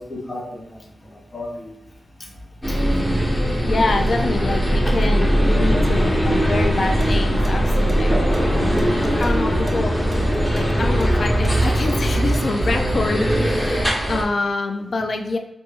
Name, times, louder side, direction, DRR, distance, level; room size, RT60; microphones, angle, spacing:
voice 1, 0.0-1.8 2.2-2.3 2.7-2.8 14.9-15.2, left 1 dB, 40° left, -1 dB, 0.8 m, -35 dB
sound 1, 2.6-14.2, equal, 15° left, 1.0 m, -20 dB
voice 2, 3.6-8.1 9.2-15.4, left 3 dB, 55° left, 5 dB, 0.4 m, -26 dB
sound 2, 7.0-7.1 7.4-7.5 7.9-9.3 9.7-9.8 10.1-12.4, right 2 dB, 45° right, 0.7 m, -37 dB
3.1 x 2.5 x 3.4 m, 0.85 s
cardioid pair, 55°, 0 cm